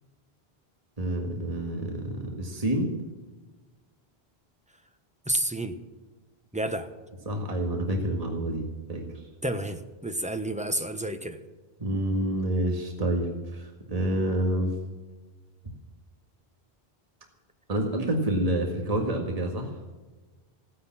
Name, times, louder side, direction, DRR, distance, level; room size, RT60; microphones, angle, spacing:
voice 1, 1.0-2.9 7.3-9.0 11.8-14.7 17.7-19.7, right 1 dB, 35° right, 1 dB, 2.0 m, -28 dB
voice 2, 5.3-5.7 6.5-6.9 9.4-11.4, right 1 dB, 5° right, 7 dB, 1.0 m, -30 dB
16.0 x 10.0 x 7.4 m, 1.3 s
omnidirectional pair, 1.1 m